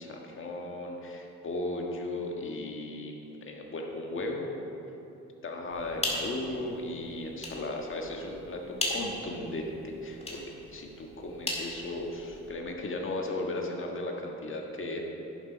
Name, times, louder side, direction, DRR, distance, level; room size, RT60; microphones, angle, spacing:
voice 1, 0.0-4.5 5.4-10.4 10.7-15.0, left 2 dB, 40° left, 1 dB, 1.5 m, -36 dB
sound 1, 5.7-12.5, left 1 dB, 20° left, 2.2 m, -38 dB
11.0 x 7.0 x 5.0 m, 2.9 s
cardioid pair, 90°, 30 cm